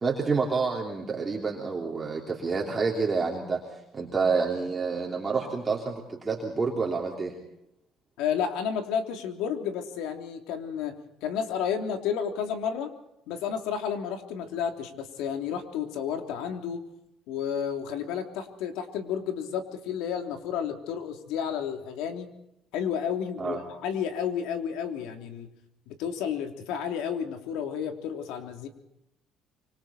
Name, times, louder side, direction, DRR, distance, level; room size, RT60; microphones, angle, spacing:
voice 1, 0.0-3.6 3.9-7.3 23.4-23.6, right 4 dB, 20° right, -2 dB, 3.3 m, -28 dB
voice 2, 8.2-10.9 11.2-12.9 13.3-16.8 17.3-22.3 22.7-25.5 25.9-28.7, left 8 dB, 90° left, 5 dB, 3.2 m, -31 dB
26.5 x 24.5 x 4.4 m, 0.83 s
cardioid pair, 135°, 0 cm